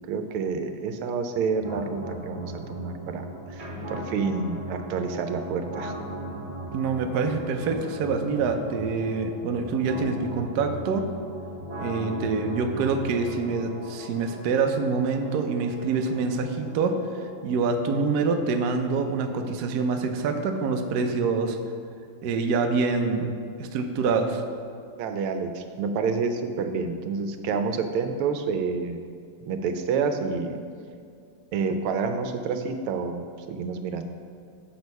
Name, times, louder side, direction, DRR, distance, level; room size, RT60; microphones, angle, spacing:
voice 1, 0.1-5.9 25.0-29.1 29.4-30.6 31.5-34.0, right 5 dB, 85° right, 7 dB, 1.6 m, -29 dB
sound 1, 1.6-17.6, right 1 dB, 30° right, 2.4 m, -38 dB
voice 2, 6.7-11.1 11.8-17.0 17.4-21.6 22.2-23.3 23.6-24.4, right 4 dB, 70° right, 5 dB, 1.0 m, -26 dB
6.8 x 6.2 x 5.4 m, 2.3 s
omnidirectional pair, 2.3 m